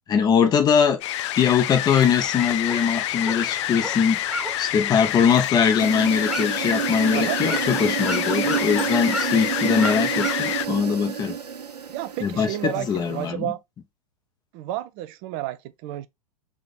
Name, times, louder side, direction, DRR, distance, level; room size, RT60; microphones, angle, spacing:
voice 1, 0.1-1.0 1.4-11.4 12.2-13.5, left 7 dB, 20° left, 0.7 m, -22 dB
sound 1, 1.0-10.7, left 13 dB, 50° left, 0.4 m, -28 dB
sound 2, 1.9-10.8, right 1 dB, ahead, 1.1 m, -36 dB
sound 3, 5.8-13.3, right 8 dB, 85° right, 0.7 m, -29 dB
voice 2, 11.9-13.6 14.5-16.1, right 14 dB, 40° right, 0.5 m, -31 dB
3.5 x 2.9 x 3.9 m
figure-of-eight pair, 105°, 20 cm